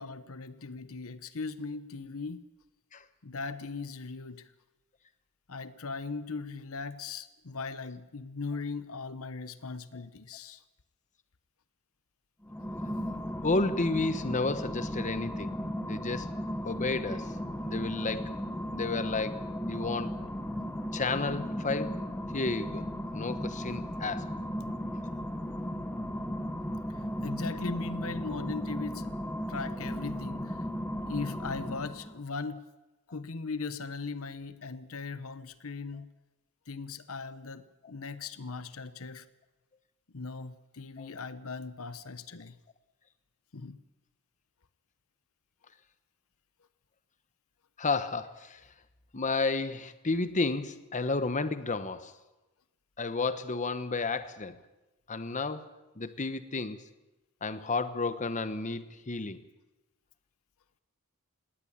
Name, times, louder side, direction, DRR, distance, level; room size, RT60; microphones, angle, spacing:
voice 1, 0.0-2.4 3.2-4.5 5.5-10.6 26.9-29.1 29.5-30.7 31.1-32.6 33.1-36.1 36.7-39.3 40.1-42.6 43.5-43.8, left 4 dB, 65° left, 13 dB, 1.0 m, -39 dB
sound 1, 12.4-32.2, equal, 10° left, 1.2 m, -36 dB
voice 2, 13.4-15.5 15.8-16.3 16.6-17.4 17.6-18.3 18.7-20.1 20.9-22.0 22.3-22.8 23.1-24.3 41.0-41.1 47.8-48.6 49.1-52.1 53.0-54.6 55.1-55.6 56.0-56.8 57.4-59.4, left 3 dB, 35° left, 12 dB, 1.0 m, -32 dB
19.0 x 18.5 x 8.8 m, 1.1 s
head